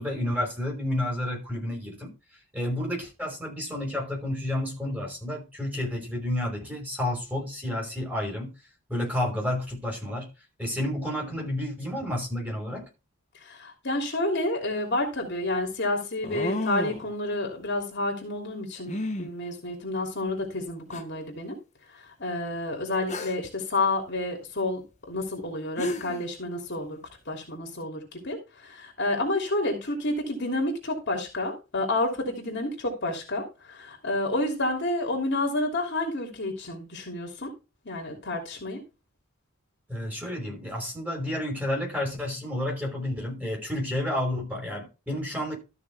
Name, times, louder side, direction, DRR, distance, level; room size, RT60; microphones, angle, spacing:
voice 1, 0.0-2.1 2.5-8.5 8.9-10.3 10.6-12.9 39.9-45.6, left 1 dB, 10° right, 5.4 m, -30 dB
voice 2, 13.4-21.6 21.9-24.8 25.1-27.0 27.3-37.5 37.8-38.8, left 2 dB, 50° left, 3.0 m, -30 dB
sound 1, 14.7-14.8 16.2-17.1 18.9-19.3 20.3-20.4 20.9-21.0 23.1-23.5 25.4-25.5 25.8-26.2, left 1 dB, 30° left, 1.4 m, -31 dB
13.5 x 6.3 x 3.5 m
head